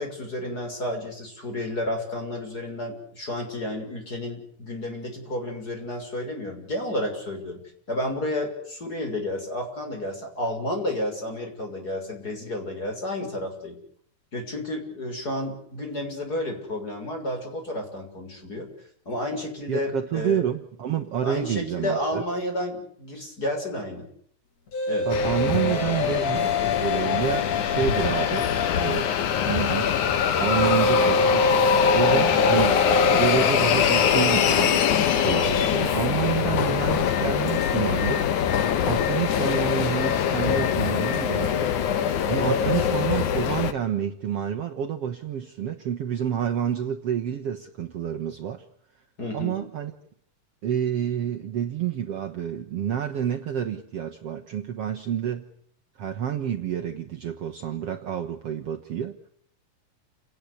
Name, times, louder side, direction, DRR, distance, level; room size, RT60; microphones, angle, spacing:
voice 1, 0.0-7.6 7.9-13.8 14.3-18.7 19.0-20.4 21.2-24.1 24.9-25.1 32.1-32.5 42.4-42.9 49.2-49.6, left 1 dB, 25° left, 7.0 m, -31 dB
voice 2, 19.7-22.2 25.1-26.5 26.8-29.1 29.4-29.9 30.4-31.5 31.9-32.8 33.1-34.8 35.1-38.3 38.9-48.7 49.3-49.9 50.6-55.5 56.0-59.2, right 9 dB, 55° right, 2.1 m, -29 dB
sound 1, 24.7-29.1 30.5-35.9, left 2 dB, 55° left, 4.7 m, -26 dB
sound 2, 25.1-43.7, left 9 dB, 70° left, 2.9 m, -23 dB
29.5 x 19.0 x 8.3 m
omnidirectional pair, 3.7 m